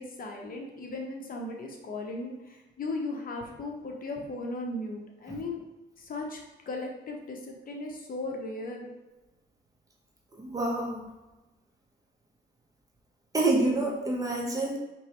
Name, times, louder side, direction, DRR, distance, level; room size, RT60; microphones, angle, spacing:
voice 1, 0.0-5.6 6.0-6.4 6.7-8.9, left 2 dB, 45° left, 1 dB, 0.8 m, -37 dB
voice 2, 10.4-11.0 13.3-14.8, right 2 dB, 15° right, -1 dB, 1.0 m, -27 dB
4.6 x 3.0 x 3.0 m, 1.1 s
cardioid pair, 90°, 20 cm